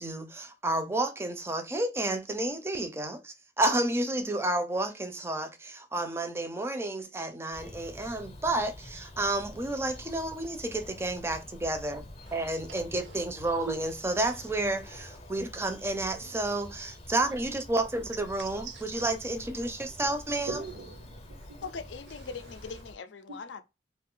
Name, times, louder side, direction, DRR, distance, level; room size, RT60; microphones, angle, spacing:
voice 1, 0.0-12.0 12.3-20.6, right 2 dB, 15° right, 0.4 m, -31 dB
Bird vocalization bird call bird song, 7.5-22.9, left 1 dB, 35° left, 0.6 m, -47 dB
voice 2, 12.9-13.2 13.6-13.8 16.3-16.4 18.4-18.8 20.5-21.7 23.3-23.4, right 5 dB, 75° right, 0.6 m, -41 dB
voice 3, 21.6-23.6, left 5 dB, 80° left, 0.5 m, -41 dB
2.6 x 2.4 x 3.6 m
head